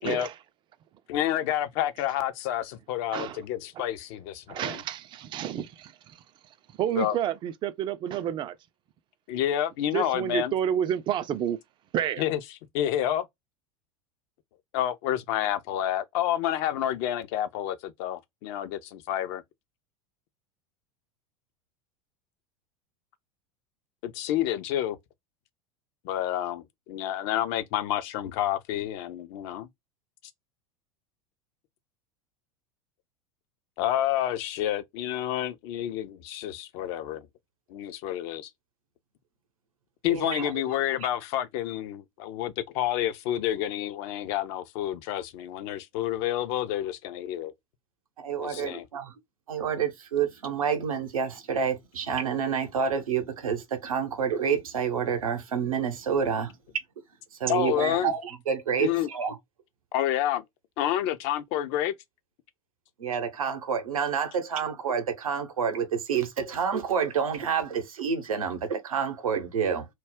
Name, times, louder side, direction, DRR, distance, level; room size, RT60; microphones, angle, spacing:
voice 1, 0.0-0.3 3.1-3.4 3.8-3.9 4.5-6.2 6.8-8.6 9.9-11.6 11.9-12.3, right 10 dB, 25° right, 0.3 m, -30 dB
voice 2, 1.1-4.8 7.0-7.2 9.3-10.5 12.2-12.4 12.7-13.3 14.7-19.4 24.0-25.0 26.0-29.7 33.8-37.3 37.7-38.5 40.0-47.5 48.4-48.9 57.5-58.1 58.8-59.1 59.9-60.4 60.8-61.9, left 12 dB, 50° left, 0.4 m, -29 dB
voice 3, 40.1-40.5 48.2-49.1 49.5-56.5 57.4-59.4 63.0-69.9, right 7 dB, 75° right, 0.7 m, -28 dB
2.3 x 2.1 x 3.4 m
figure-of-eight pair, 80°, 18 cm